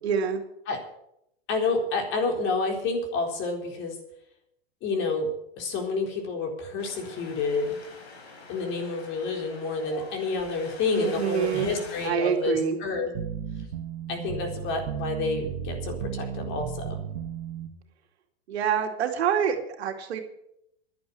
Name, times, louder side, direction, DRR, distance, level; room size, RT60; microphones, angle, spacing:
voice 1, 0.0-0.4 10.9-11.7 12.0-12.8 18.5-20.2, right 8 dB, 85° right, 4 dB, 2.5 m, -26 dB
voice 2, 1.5-4.0 4.8-7.7 8.5-13.1 14.1-17.0, left 3 dB, 40° left, 2 dB, 4.2 m, -29 dB
Wind, 6.8-12.1, left 3 dB, 85° left, 4.8 m, -44 dB
sound 1, 13.1-17.7, right 8 dB, 70° right, 1.9 m, -34 dB
11.5 x 9.6 x 8.4 m, 0.77 s
supercardioid pair, 135°, 31 cm